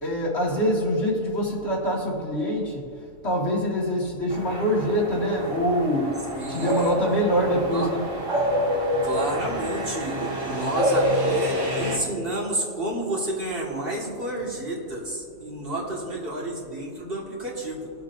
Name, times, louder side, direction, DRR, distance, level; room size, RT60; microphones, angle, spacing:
voice 1, 0.0-2.8 3.2-6.2 6.5-8.0, equal, 50° left, -3 dB, 2.2 m, -24 dB
sound 1, 4.3-12.0, equal, 60° right, 2.6 m, -27 dB
voice 2, 6.3-6.9 7.7-7.9 9.0-17.9, right 1 dB, 40° right, -5 dB, 2.1 m, -30 dB
21.5 x 7.9 x 2.6 m, 2.3 s
omnidirectional pair, 1.4 m